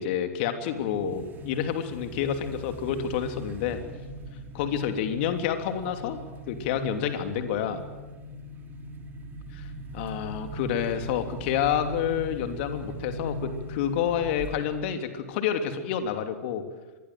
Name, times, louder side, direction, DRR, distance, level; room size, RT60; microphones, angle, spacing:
voice 1, 0.0-3.8 4.5-6.2 6.5-7.8 9.5-9.7 9.9-16.6, left 8 dB, 45° left, 7 dB, 3.1 m, -29 dB
sound 1, 0.7-15.0, right 1 dB, 20° right, 3.4 m, -40 dB
25.0 x 20.5 x 7.8 m, 1.2 s
figure-of-eight pair, 105°, 8 cm